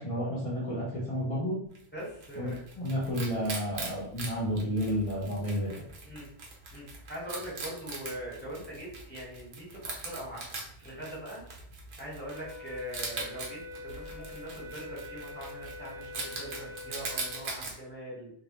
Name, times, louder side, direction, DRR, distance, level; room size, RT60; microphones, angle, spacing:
voice 1, 0.0-1.6 2.4-5.8, equal, 40° left, -6 dB, 0.5 m, -31 dB
Wild animals, 1.7-17.7, right 3 dB, 80° right, 0.9 m, -42 dB
voice 2, 1.9-2.6 6.0-6.3 6.7-11.4 12.0-18.3, right 1 dB, 10° left, -7 dB, 0.9 m, -42 dB
sound 1, 12.3-17.4, left 3 dB, 55° right, 0.6 m, -44 dB
2.2 x 2.0 x 2.9 m, 0.68 s
omnidirectional pair, 1.1 m